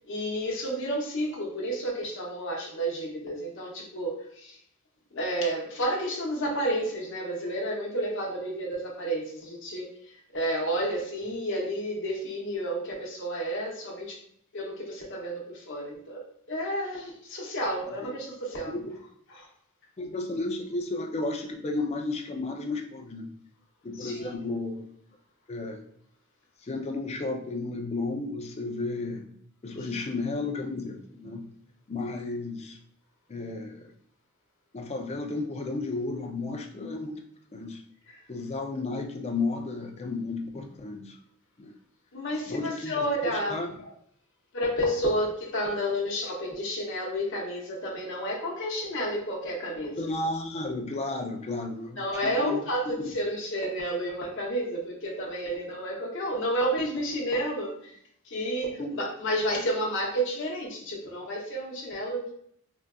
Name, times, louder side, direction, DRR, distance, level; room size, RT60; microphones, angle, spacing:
voice 1, 0.1-4.6 5.1-14.2 14.5-18.7 19.4-19.5 24.0-24.4 38.1-38.2 42.1-43.6 44.5-50.1 52.0-57.9 58.2-62.3, equal, 60° left, -3 dB, 0.8 m, -31 dB
voice 2, 18.6-19.0 20.0-23.3 23.8-24.9 25.5-25.8 26.6-29.3 29.6-31.5 31.9-32.8 33.3-33.9 34.7-37.2 37.5-37.8 38.3-41.2 41.6-41.7 42.5-43.7 50.0-52.6 53.0-53.1 58.8-59.1, left 3 dB, 30° left, 3 dB, 0.4 m, -33 dB
3.8 x 2.4 x 2.2 m, 0.66 s
head